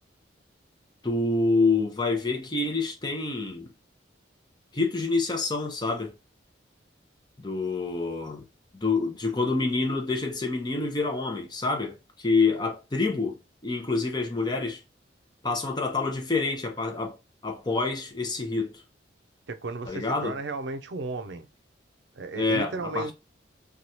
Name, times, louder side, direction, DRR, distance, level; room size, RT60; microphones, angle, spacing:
voice 1, 1.0-3.7 4.7-6.1 7.4-8.4 8.7-14.8 15.4-17.2 17.4-18.8 19.9-20.4 22.3-23.1, left 3 dB, 20° left, 0.6 m, -27 dB
voice 2, 19.5-21.5 22.1-23.1, right 3 dB, 65° right, 0.5 m, -34 dB
3.0 x 2.3 x 2.6 m
head